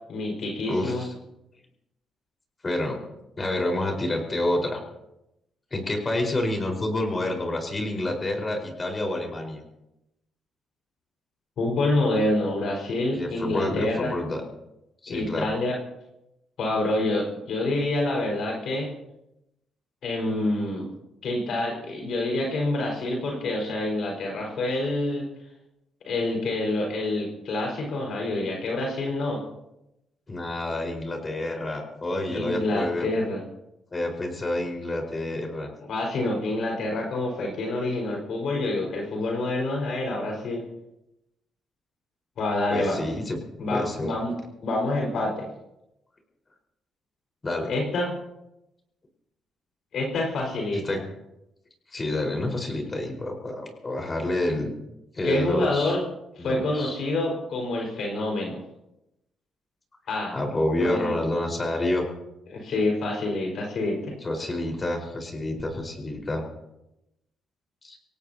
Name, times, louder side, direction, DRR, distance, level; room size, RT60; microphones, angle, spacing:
voice 1, 0.1-1.0 11.6-14.1 15.1-15.8 16.6-18.9 20.0-20.9 21.2-25.3 26.1-29.4 32.3-33.4 35.9-40.6 42.4-43.0 43.6-44.3 44.6-45.5 47.7-48.2 49.9-51.0 55.2-56.0 56.4-58.6 60.1-60.3 60.8-61.1 62.5-64.1, left 2 dB, 65° left, 0 dB, 5.1 m, -27 dB
voice 2, 0.7-1.1 2.6-3.0 3.4-4.8 5.7-9.6 13.1-14.4 15.0-15.5 30.3-33.1 33.9-35.7 42.7-43.4 43.7-44.1 47.4-47.7 50.8-51.0 51.9-54.7 55.1-55.9 56.4-56.9 60.3-62.1 64.2-66.4 67.8-68.0, left 1 dB, 30° left, 2 dB, 4.7 m, -28 dB
25.0 x 17.5 x 2.9 m, 0.88 s
cardioid pair, 90°, 0 cm